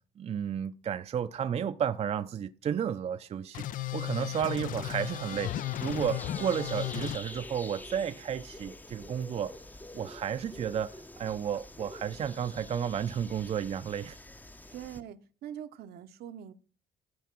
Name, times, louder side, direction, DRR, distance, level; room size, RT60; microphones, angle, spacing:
voice 1, 0.2-3.7 3.9-5.5 5.8-9.5 9.9-14.2, right 8 dB, 40° right, 0.6 m, -32 dB
sound 1, 3.5-7.2, left 14 dB, 55° left, 0.4 m, -35 dB
sound 2, 4.7-15.0, left 2 dB, 10° left, 0.7 m, -46 dB
voice 2, 14.7-16.5, right 10 dB, 70° right, 0.9 m, -43 dB
12.5 x 4.7 x 6.0 m
cardioid pair, 110°, 17 cm